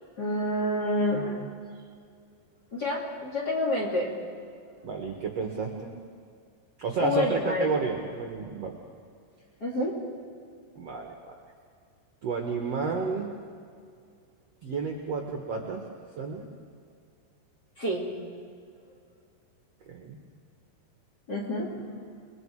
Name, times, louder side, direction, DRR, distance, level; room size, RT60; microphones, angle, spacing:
voice 1, 0.2-1.5 2.7-4.1 7.0-7.7 9.6-9.9 17.8-18.0 21.3-22.0, left 1 dB, 25° left, -3 dB, 3.0 m, -28 dB
voice 2, 4.8-5.9 6.8-8.8 10.8-11.4 12.2-13.3 14.6-15.8 16.2-16.5 19.9-20.2, right 4 dB, 55° right, 1 dB, 2.0 m, -31 dB
29.0 x 21.5 x 4.9 m, 2.3 s
omnidirectional pair, 4.9 m